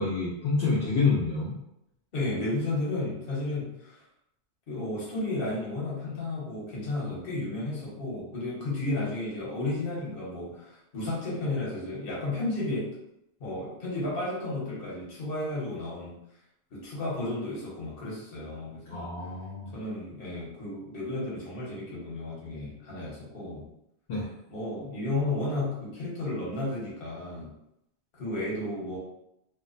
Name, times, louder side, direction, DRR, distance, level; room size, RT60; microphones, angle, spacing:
voice 1, 0.0-1.6 18.9-19.7 24.1-24.3, left 4 dB, 75° left, -7 dB, 0.8 m, -27 dB
voice 2, 2.1-4.0 4.7-12.9 13.4-16.2 16.7-19.0 19.7-23.7 24.5-27.5 28.1-29.0, left 2 dB, 60° left, -6 dB, 1.1 m, -33 dB
2.6 x 2.0 x 2.5 m, 0.82 s
omnidirectional pair, 1.1 m